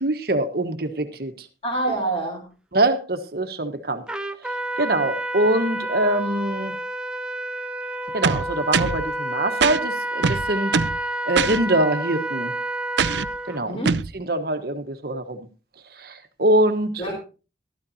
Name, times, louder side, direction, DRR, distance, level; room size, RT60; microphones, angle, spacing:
voice 1, 0.0-1.5 2.7-4.0 4.8-6.7 8.1-10.8 11.3-12.5 13.5-13.8 14.1-15.4 16.0-17.0, right 1 dB, 55° right, 8 dB, 1.3 m, -23 dB
voice 2, 1.6-2.4 13.6-14.0 17.0-17.1, right 2 dB, 30° left, 0 dB, 3.5 m, -26 dB
Trumpet, 4.1-13.6, right 1 dB, 5° right, 0.6 m, -29 dB
sound 1, 8.2-9.0 9.6-9.8 10.2-11.0 11.4-11.6 13.0-13.3 13.9-14.1, right 5 dB, 70° right, 0.5 m, -22 dB
13.0 x 13.0 x 2.8 m, 0.33 s
head